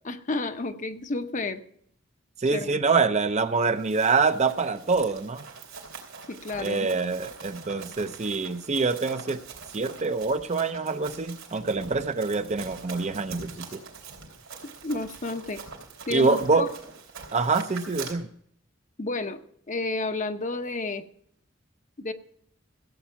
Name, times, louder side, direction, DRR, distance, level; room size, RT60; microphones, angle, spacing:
voice 1, 0.1-1.6 2.5-2.8 6.3-6.9 14.8-15.6 16.1-16.7 19.0-19.4 19.7-21.0 22.0-22.1, left 3 dB, 40° left, 8 dB, 0.8 m, -31 dB
voice 2, 2.4-5.4 6.6-9.4 9.7-13.8 16.1-16.7 17.3-18.3, right 4 dB, 35° right, 10 dB, 0.6 m, -25 dB
Run, 3.6-18.1, right 5 dB, 80° right, 3.5 m, -44 dB
15.5 x 8.2 x 5.8 m, 0.67 s
head